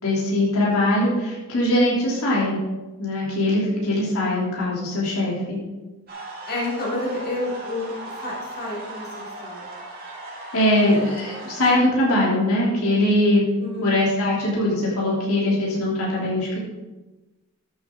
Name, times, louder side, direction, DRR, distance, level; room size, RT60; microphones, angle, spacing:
voice 1, 0.0-2.6 3.0-5.6 10.5-13.4 13.8-16.6, left 1 dB, 90° left, -6 dB, 3.6 m, -21 dB
sound 1, 6.1-11.7, right 2 dB, 45° right, 2.9 m, -37 dB
voice 2, 6.4-9.6 13.6-13.9, left 2 dB, 45° left, -5 dB, 3.3 m, -30 dB
13.0 x 8.0 x 3.9 m, 1.1 s
head